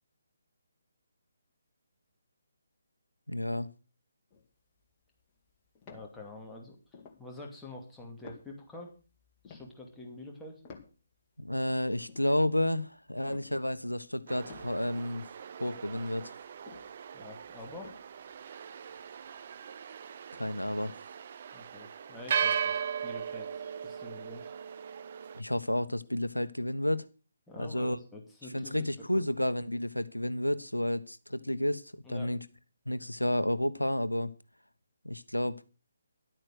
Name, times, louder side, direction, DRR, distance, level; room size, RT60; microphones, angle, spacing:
voice 1, 3.3-3.7 11.4-15.3 15.6-16.3 20.3-21.0 25.3-27.1 27.6-28.0 28.5-32.4 32.9-34.3 35.0-35.6, left 1 dB, 85° left, 13 dB, 1.1 m, -31 dB
sound 1, 4.3-6.6 6.9-7.2 7.7-7.8 8.0-11.4 11.8-14.1 14.4-18.4 18.9-19.0, left 5 dB, 20° left, 2.2 m, -53 dB
voice 2, 5.9-6.8 7.2-8.9 9.4-10.6 17.1-17.9 21.5-23.5 23.8-24.5 27.5-29.2 32.0-32.3, left 1 dB, 5° left, -2 dB, 2.5 m, -46 dB
sound 2, 14.3-25.4, right 7 dB, 40° right, 0.7 m, -38 dB
11.5 x 9.0 x 6.5 m, 0.33 s
figure-of-eight pair, 145°, 0 cm